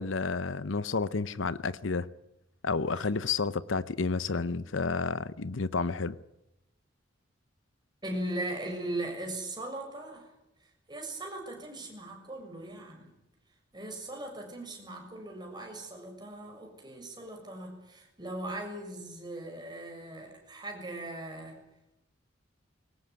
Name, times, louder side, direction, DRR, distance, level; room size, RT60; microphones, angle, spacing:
voice 1, 0.0-2.1 2.6-6.2, left 4 dB, 80° left, 0.8 m, -30 dB
voice 2, 8.0-10.3 10.9-13.1 13.7-21.6, right 1 dB, 20° right, 6.7 m, -39 dB
22.5 x 19.0 x 9.5 m
head